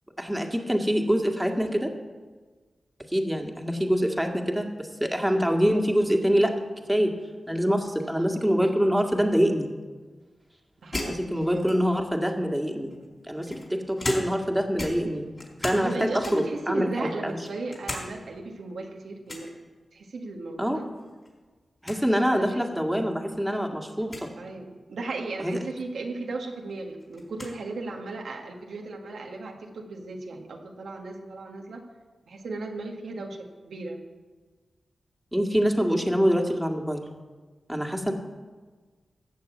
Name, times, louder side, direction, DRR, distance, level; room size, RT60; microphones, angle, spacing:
voice 1, 0.2-1.9 3.1-6.5 6.9-7.2 7.5-9.7 10.9-12.9 13.3-15.3 15.6-17.4 20.6-20.9 21.8-24.3 25.4-25.6 35.3-37.0 37.7-38.1, equal, 5° right, 2 dB, 2.0 m, -25 dB
voice 2, 8.0-8.3 10.8-11.3 12.8-13.0 15.7-19.6 19.9-20.9 22.3-22.6 24.4-31.8 32.3-34.0, right 3 dB, 90° right, 1 dB, 1.6 m, -36 dB
sound 1, 10.9-12.1 12.9-14.5 14.8-15.9 16.2-16.6 17.1-18.1 18.4-18.5 19.3-19.5 21.0-21.3 21.6-21.7 21.8-22.0 22.8-22.9 24.0-24.3 26.0-26.1 26.4-27.6, left 2 dB, 40° left, 4.1 m, -36 dB
15.5 x 6.7 x 8.3 m, 1.4 s
cardioid pair, 55°, 0 cm